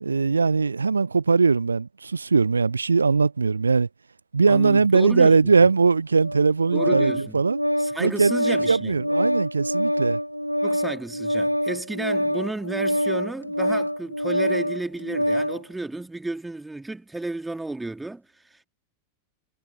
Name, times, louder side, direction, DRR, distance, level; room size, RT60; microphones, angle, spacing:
voice 1, 0.0-3.9 4.3-7.6 8.0-10.2, right 4 dB, 75° right, 0.6 m, -20 dB
voice 2, 4.5-5.7 6.7-7.4 7.8-9.0 10.6-18.6, right 2 dB, 5° right, 3.1 m, -33 dB
Organ, 6.2-15.6, equal, 90° left, 0.4 m, -25 dB
figure-of-eight pair, 90°, 0 cm